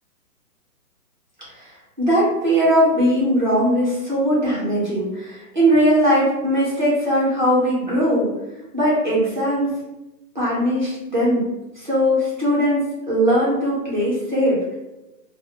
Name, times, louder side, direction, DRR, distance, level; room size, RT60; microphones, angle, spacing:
voice 1, 1.5-8.3 8.7-9.7 10.3-11.4 11.7-14.8, equal, 30° right, -8 dB, 0.6 m, -19 dB
2.3 x 2.0 x 2.7 m, 1.0 s
hypercardioid pair, 175°, 47 cm